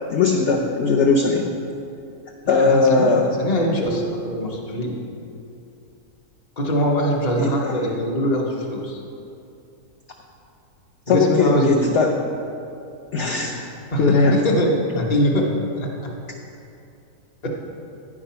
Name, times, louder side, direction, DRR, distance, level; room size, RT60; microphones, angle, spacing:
voice 1, 0.1-1.5 2.5-3.3 7.4-7.7 11.1-12.1 13.1-13.6 14.0-14.4, left 4 dB, 60° left, 0 dB, 0.8 m, -19 dB
voice 2, 2.4-4.9 6.6-9.0 11.1-12.0 13.9-15.5 15.8-15.9 17.4-17.5, equal, 30° left, 0 dB, 0.9 m, -22 dB
sound 1, 3.8-5.5, right 4 dB, 65° right, 0.7 m, -36 dB
9.7 x 5.0 x 5.7 m, 2.6 s
omnidirectional pair, 1.7 m